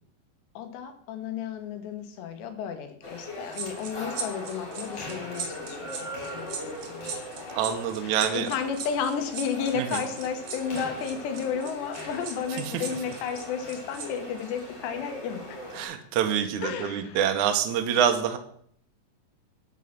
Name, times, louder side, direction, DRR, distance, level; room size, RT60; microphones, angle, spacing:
voice 1, 0.5-7.1 8.0-15.6 16.6-17.2, left 7 dB, 75° left, 7 dB, 3.2 m, -33 dB
sound 1, 3.0-15.9, left 1 dB, 30° left, 2.9 m, -40 dB
sound 2, 3.5-14.1 14.4-14.6, right 6 dB, 60° right, 2.0 m, -38 dB
voice 2, 7.6-8.5 9.7-10.0 12.7-12.9 15.7-18.4, right 9 dB, 85° right, 6 dB, 1.7 m, -26 dB
8.9 x 6.5 x 5.9 m, 0.65 s
omnidirectional pair, 5.1 m